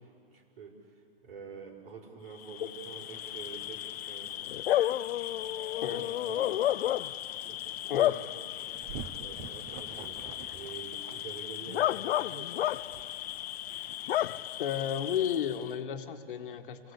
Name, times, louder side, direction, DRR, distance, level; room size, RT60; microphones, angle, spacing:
voice 1, 0.0-4.4 5.9-6.0 6.3-6.6 6.9-7.2 7.4-7.6 8.6-8.9 9.2-12.7, right 5 dB, 70° right, 2 dB, 5.3 m, -48 dB
Bark / Cricket, 2.4-15.7, left 13 dB, 80° left, 0.5 m, -33 dB
sound 1, 7.0-7.1 7.5-13.7, right 7 dB, 20° right, 0.8 m, -47 dB
voice 2, 14.6-16.9, left 9 dB, 55° left, 7 dB, 1.6 m, -33 dB
28.5 x 17.5 x 8.3 m, 2.5 s
hypercardioid pair, 160°, 30 cm